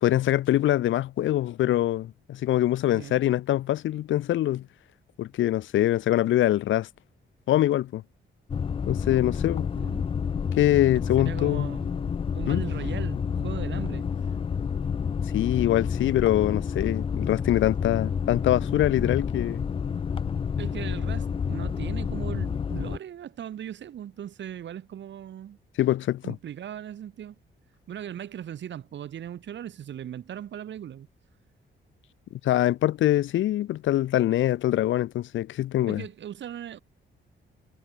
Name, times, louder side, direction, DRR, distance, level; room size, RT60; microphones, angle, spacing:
voice 1, 0.0-4.6 5.2-6.9 7.5-8.0 8.9-9.7 10.5-11.7 12.5-12.6 15.3-19.6 25.8-26.4 32.4-36.0, left 13 dB, 85° left, 0.6 m, -24 dB
sound 1, 8.5-23.0, left 6 dB, 30° left, 0.5 m, -29 dB
voice 2, 9.8-10.3 11.2-12.0 12.3-14.1 20.6-25.6 26.2-27.4 27.9-31.1 35.9-36.8, right 10 dB, 70° right, 7.9 m, -38 dB
wide cardioid pair, 170°, 19 cm